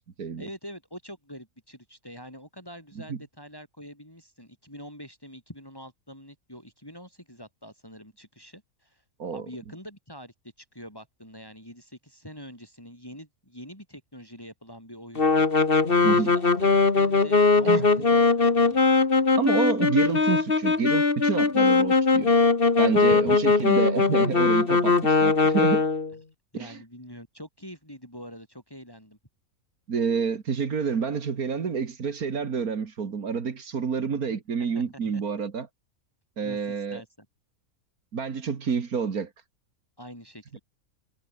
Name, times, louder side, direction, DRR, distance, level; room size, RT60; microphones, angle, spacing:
voice 1, 0.4-9.0 9.3-15.5 15.9-18.9 22.9-23.4 26.5-29.2 34.7-35.0 36.4-37.3 40.0-40.6, equal, 15° left, 7.9 m, -45 dB
sound 1, 15.1-26.1, left 4 dB, 40° left, 2.1 m, -21 dB
voice 2, 19.4-22.3 22.8-25.8 26.5-26.8 29.9-35.7 36.4-37.0 38.1-39.3, right 6 dB, 75° right, 2.3 m, -28 dB
omnidirectional pair, 1.5 m